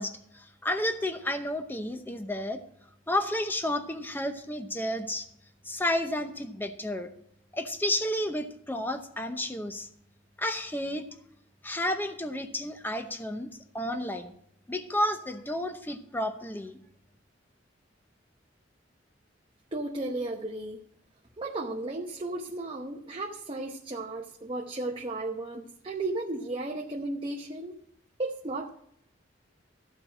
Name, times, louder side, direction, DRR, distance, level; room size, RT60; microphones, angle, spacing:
voice 1, 0.0-2.6 3.1-5.3 5.6-7.1 7.5-9.9 10.4-11.0 11.6-13.5 13.7-14.3 14.7-16.8, left 1 dB, 10° left, 7 dB, 0.8 m, -31 dB
voice 2, 19.7-20.8 21.4-27.8 28.2-28.7, right 2 dB, 30° right, 0 dB, 0.9 m, -34 dB
14.0 x 4.7 x 8.8 m, 0.71 s
head